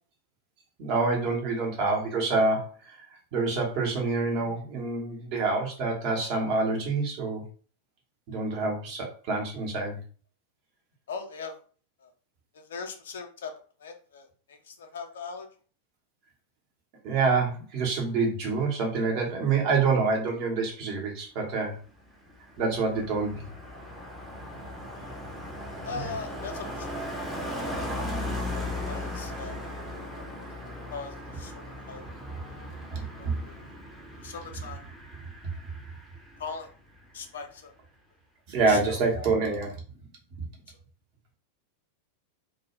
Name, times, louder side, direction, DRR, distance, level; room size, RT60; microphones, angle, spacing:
voice 1, 0.8-3.1 3.3-7.4 8.3-10.0 17.0-21.8 22.6-23.5 26.0-26.1 32.8-33.4 38.5-39.8 40.4-40.5, right 4 dB, 45° right, 1 dB, 0.8 m, -27 dB
voice 2, 11.1-11.6 12.0-12.1 12.5-13.5 13.8-15.5 25.8-26.9 27.6-28.0 28.5-29.5 30.9-32.0 33.2-33.6 34.2-34.8 36.4-36.7 37.1-37.7 38.7-39.3, left 5 dB, 60° left, 5 dB, 0.4 m, -40 dB
Car passing by, 21.9-36.7 36.9-37.3, left 1 dB, 5° right, 0.6 m, -38 dB
2.2 x 2.0 x 3.0 m, 0.41 s
figure-of-eight pair, 90°, 0 cm